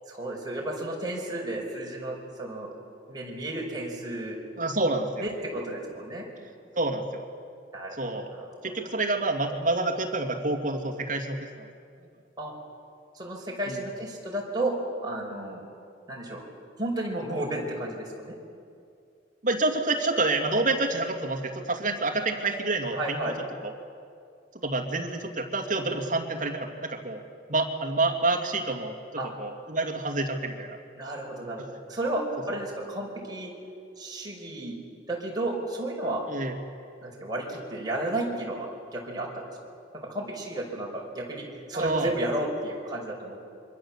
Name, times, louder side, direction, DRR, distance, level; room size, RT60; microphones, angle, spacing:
voice 1, 0.1-2.7 3.1-4.4 5.2-6.3 7.7-8.7 12.4-12.5 13.1-14.7 15.0-15.6 16.1-16.4 16.8-18.4 22.9-23.3 29.2-29.3 31.0-31.6 31.9-33.5 34.0-34.8 35.1-36.3 37.0-39.4 39.9-43.4, right 1 dB, 20° right, -2 dB, 5.3 m, -33 dB
voice 2, 4.6-5.3 6.8-7.2 8.0-8.3 8.6-11.7 13.7-13.8 19.4-23.3 23.6-23.7 24.6-27.2 27.5-30.8 31.6-31.7 32.5-32.6 36.3-36.5 41.7-42.1, right 2 dB, 40° right, 2 dB, 2.5 m, -28 dB
27.0 x 24.0 x 7.4 m, 2.4 s
head